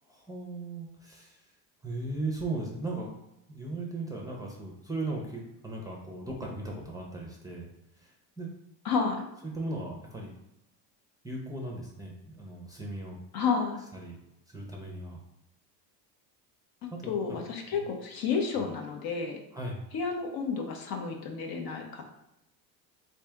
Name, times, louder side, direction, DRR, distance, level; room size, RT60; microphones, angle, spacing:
voice 1, 0.0-1.4 1.8-3.2 3.5-7.7 8.0-8.5 9.4-10.3 11.2-13.2 13.9-15.2 16.9-17.1 17.7-17.9 19.5-19.8, right 2 dB, 5° right, -1 dB, 0.6 m, -37 dB
voice 2, 8.8-9.3 13.3-13.8 17.1-19.4 19.9-22.2, left 5 dB, 45° left, 3 dB, 0.7 m, -31 dB
3.3 x 2.8 x 3.4 m, 0.87 s
supercardioid pair, 105°, 50 cm